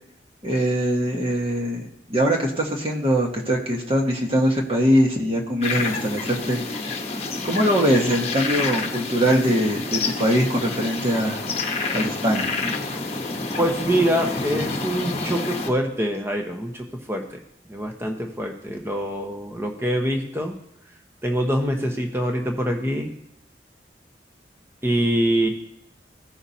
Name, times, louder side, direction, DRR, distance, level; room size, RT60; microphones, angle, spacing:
voice 1, 0.4-6.6 7.4-11.4 11.9-12.5, equal, 35° right, -2 dB, 1.5 m, -22 dB
sound 1, 5.6-15.7, left 3 dB, 35° left, 1.0 m, -28 dB
voice 2, 13.6-17.4 17.7-20.5 21.2-23.1 24.8-25.5, right 1 dB, 15° right, 3 dB, 1.0 m, -24 dB
16.0 x 5.8 x 2.8 m, 0.79 s
head